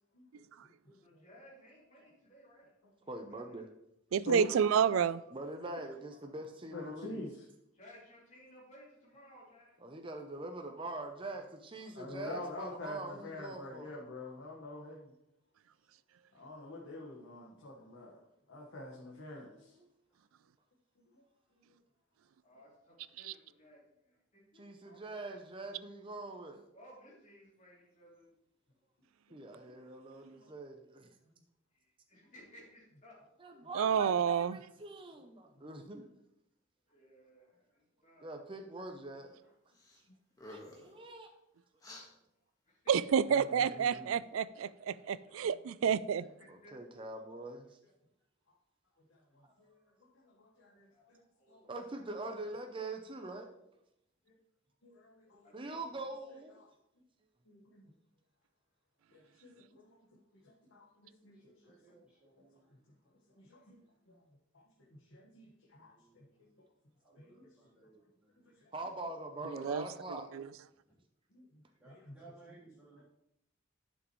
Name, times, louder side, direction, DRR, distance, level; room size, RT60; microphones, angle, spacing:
voice 1, 0.1-1.2 4.3-4.5 6.7-7.4 11.9-15.1 16.3-18.2 18.5-19.7 21.1-21.2 21.7-21.8 30.3-30.5 49.1-49.8 50.1-51.2 51.5-51.6 54.3-54.4 54.8-55.7 56.6-56.7 57.4-57.9 59.1-60.0 60.4-61.4 61.6-61.7 63.4-63.8 64.5-64.6 64.9-66.3 67.1-67.5 68.6-68.7 69.6-69.7 71.3-72.1 72.5-72.6, left 2 dB, 75° left, 1.5 m, -47 dB
voice 2, 1.0-2.7 3.3-3.7 5.8-6.4 7.7-9.8 22.4-25.2 26.7-28.3 31.7-33.2 33.4-33.8 36.9-38.3 42.6-42.8 43.3-44.6 46.1-47.0 50.9-51.7 55.4-56.0, equal, 35° left, 3.0 m, -59 dB
voice 3, 3.1-3.7 5.3-7.3 9.8-13.9 19.4-19.9 24.5-26.6 29.3-31.1 33.4-36.1 38.2-39.3 40.5-41.3 43.4-44.1 46.5-47.8 51.6-53.5 55.5-56.6 68.7-70.3, right 2 dB, 25° right, 0.6 m, -44 dB
voice 4, 4.1-5.2 30.3-30.4 33.7-34.5 42.9-46.2 69.6-69.8 70.3-70.5, right 7 dB, 85° right, 0.4 m, -29 dB
voice 5, 37.4-37.8 39.4-39.5 41.2-41.3 41.9-42.1 51.2-51.3 53.6-53.7 55.2-55.4 61.3-62.9 63.4-63.8 65.7-66.6 67.0-68.6 71.8-73.0, right 3 dB, 5° right, 3.2 m, -62 dB
sound 1, 39.7-40.0 40.3-40.9 41.8-42.1, left 1 dB, 20° left, 1.5 m, -50 dB
11.0 x 6.1 x 3.1 m
head